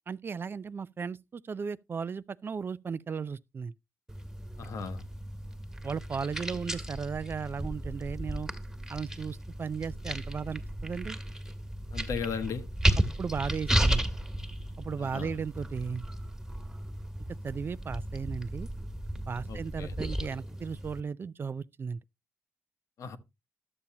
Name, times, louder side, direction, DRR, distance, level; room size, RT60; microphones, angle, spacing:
voice 1, 0.1-3.7 5.8-8.5 8.9-11.2 13.2-14.1 14.8-16.0 17.4-18.7 19.3-22.0, right 6 dB, 40° right, 0.4 m, -36 dB
sound 1, 4.1-21.0, right 1 dB, 10° right, 1.6 m, -34 dB
voice 2, 4.6-5.0 11.9-12.7 15.0-15.4 19.5-20.0 23.0-23.2, left 6 dB, 75° left, 1.1 m, -36 dB
12.0 x 7.1 x 2.8 m
cardioid pair, 80°, 6 cm